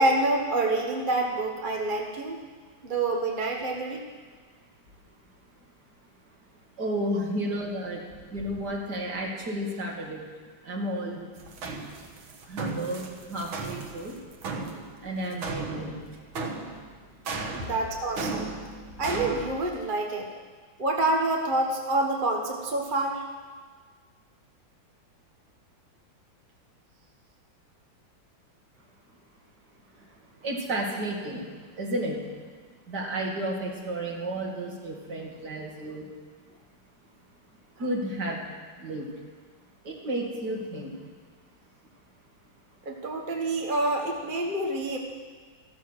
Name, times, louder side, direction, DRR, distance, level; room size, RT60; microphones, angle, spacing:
voice 1, 0.0-2.4 2.8-4.0 7.1-7.2 17.5-18.5 19.0-20.3 20.8-23.2 37.8-37.9 42.8-45.0, right 2 dB, 30° right, 1 dB, 1.3 m, -27 dB
voice 2, 6.8-8.0 8.3-10.2 10.6-11.3 12.5-14.2 15.0-16.0 30.4-31.5 31.8-32.2 32.9-36.1 37.8-38.4 38.8-39.1 39.8-41.0, right 1 dB, 55° right, 0 dB, 2.8 m, -32 dB
sound 1, 11.4-19.5, right 3 dB, 80° right, 2.2 m, -36 dB
14.0 x 14.0 x 6.3 m, 1.5 s
omnidirectional pair, 2.2 m